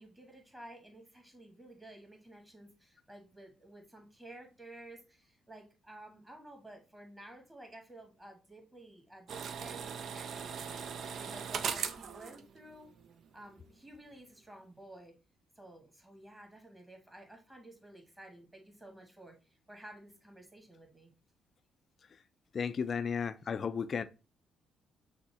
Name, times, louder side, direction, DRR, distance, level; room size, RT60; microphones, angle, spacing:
voice 1, 0.0-10.9 11.1-12.9 13.3-15.1 15.6-19.4 19.7-21.1, right 1 dB, 10° right, 1.7 m, -53 dB
sound 1, 9.3-13.3 13.6-13.7, right 6 dB, 60° right, 0.4 m, -39 dB
voice 2, 22.5-24.0, left 6 dB, 50° left, 0.3 m, -34 dB
6.0 x 2.1 x 3.3 m
hypercardioid pair, 45°, 0 cm